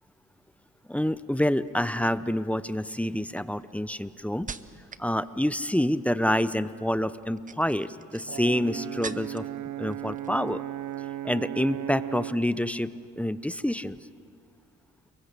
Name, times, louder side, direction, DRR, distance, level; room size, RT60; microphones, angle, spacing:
voice 1, 0.9-4.5 5.0-9.4 9.8-10.6 11.2-12.9 13.2-14.1, left 1 dB, 5° left, 14 dB, 0.7 m, -27 dB
sound 1, 1.7-2.0 2.7-5.1 5.4-5.9 7.2-9.6 9.9-10.6 10.8-11.1, right 5 dB, 25° right, 0.9 m, -44 dB
Brass instrument, 8.3-12.5, right 13 dB, 75° right, 0.6 m, -36 dB
30.0 x 23.0 x 6.8 m, 2.1 s
cardioid pair, 90°, 30 cm